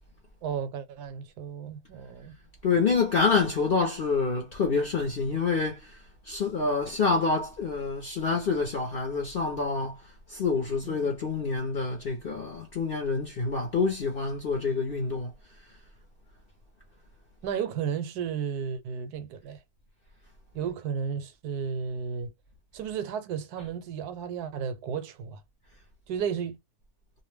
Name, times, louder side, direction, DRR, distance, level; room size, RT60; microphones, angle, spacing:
voice 1, 0.4-2.3 10.8-11.0 17.4-19.6 20.5-22.3 22.7-25.4 26.1-26.6, right 7 dB, 75° right, 1.1 m, -33 dB
voice 2, 2.6-6.0 6.3-10.0 10.3-15.3 23.6-23.7, left 4 dB, 55° left, 0.6 m, -27 dB
2.6 x 2.1 x 3.2 m
omnidirectional pair, 1.7 m